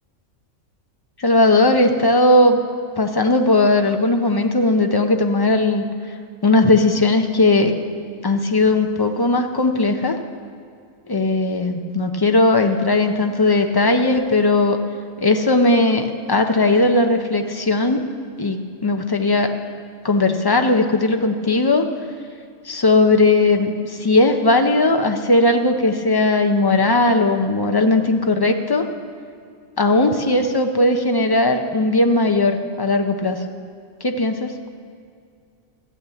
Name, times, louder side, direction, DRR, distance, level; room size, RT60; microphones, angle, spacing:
voice 1, 1.2-2.6 3.0-5.9 6.4-7.7 8.2-10.1 11.1-14.8 15.2-18.0 18.4-19.5 20.0-21.9 22.6-28.9 29.8-33.4 34.0-34.5, left 2 dB, 35° left, 5 dB, 0.4 m, -17 dB
13.5 x 6.0 x 8.1 m, 2.2 s
omnidirectional pair, 1.4 m